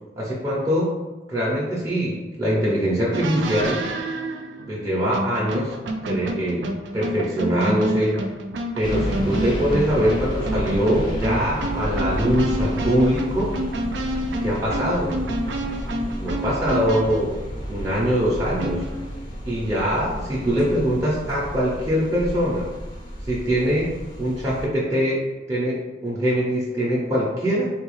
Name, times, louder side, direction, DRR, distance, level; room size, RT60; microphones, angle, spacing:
voice 1, 0.2-0.9 1.3-3.9 4.7-5.7 6.1-8.2 8.7-13.6 14.4-15.2 16.2-17.4 17.7-18.8 19.4-22.7 23.3-23.9 24.2-25.2 25.5-27.7, equal, 20° right, -8 dB, 0.6 m, -23 dB
sound 1, 3.1-17.3 18.6-19.2, right 1 dB, 75° right, 0.4 m, -29 dB
sound 2, 8.8-24.7, equal, 25° left, 0.5 m, -31 dB
3.8 x 2.3 x 3.1 m, 1.2 s
head